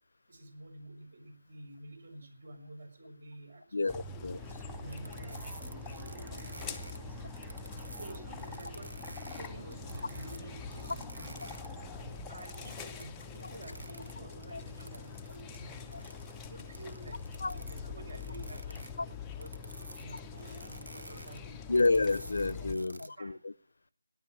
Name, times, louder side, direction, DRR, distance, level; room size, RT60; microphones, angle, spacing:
voice 1, 0.3-3.9 4.4-7.3 7.9-8.9 9.2-11.4 12.3-16.1 16.5-17.2 17.5-19.5 20.0-21.6 22.3-23.4, right 2 dB, 45° right, 6.2 m, -50 dB
voice 2, 3.7-4.4 14.5-14.6 17.4-17.6 21.7-23.5, left 3 dB, 60° left, 0.7 m, -29 dB
sound 1, 3.9-22.7, left 5 dB, 10° left, 0.8 m, -45 dB
sound 2, 4.4-12.6, equal, 10° right, 2.6 m, -47 dB
sound 3, 4.9-11.8 12.2-17.8 18.1-23.1, right 2 dB, 75° right, 2.3 m, -50 dB
17.5 x 12.0 x 6.4 m
figure-of-eight pair, 165°, 0 cm